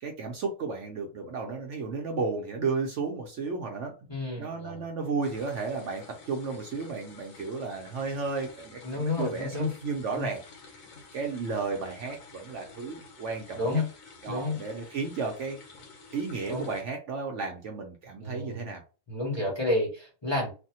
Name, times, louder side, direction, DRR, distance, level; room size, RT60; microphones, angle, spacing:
voice 1, 0.0-3.9 4.4-10.4 11.1-13.8 14.2-15.6 16.1-18.8 19.3-19.5, right 4 dB, 65° right, 0.9 m, -33 dB
voice 2, 4.1-4.8 8.8-9.7 10.1-10.3 13.5-13.9 14.3-14.6 16.4-16.7 18.2-18.7 19.1-20.5, left 2 dB, 20° left, 0.9 m, -30 dB
sound 1, 5.2-16.8, left 4 dB, 70° left, 1.2 m, -51 dB
3.3 x 2.2 x 2.8 m
omnidirectional pair, 1.5 m